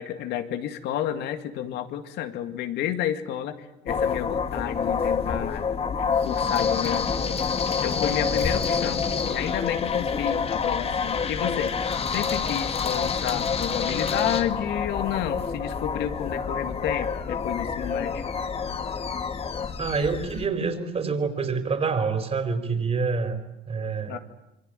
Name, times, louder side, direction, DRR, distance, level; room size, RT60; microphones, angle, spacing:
voice 1, 0.0-5.7 6.2-7.4 7.8-11.7 12.1-18.2 24.1-24.2, left 11 dB, 85° left, 8 dB, 2.2 m, -31 dB
sound 1, 3.9-20.5, left 6 dB, 35° left, 1.7 m, -27 dB
voice 2, 19.8-23.4 23.7-24.2, right 5 dB, 35° right, 7 dB, 4.4 m, -27 dB
26.5 x 23.5 x 9.2 m, 0.91 s
cardioid pair, 110°, 17 cm